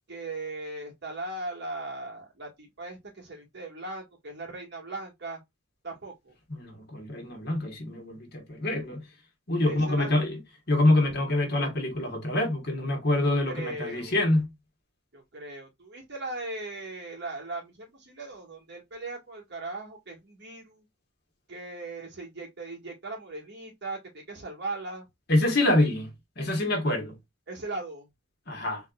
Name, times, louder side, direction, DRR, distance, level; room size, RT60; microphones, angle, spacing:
voice 1, 0.1-5.4 5.8-6.3 9.6-10.1 13.2-14.2 15.1-20.9 21.5-25.1 27.5-28.1, right 2 dB, 55° right, 2.2 m, -38 dB
voice 2, 6.5-9.0 9.5-10.4 10.7-14.5 25.3-26.1 26.4-27.1 28.5-28.8, left 1 dB, 50° left, 1.6 m, -26 dB
4.0 x 3.3 x 2.5 m
head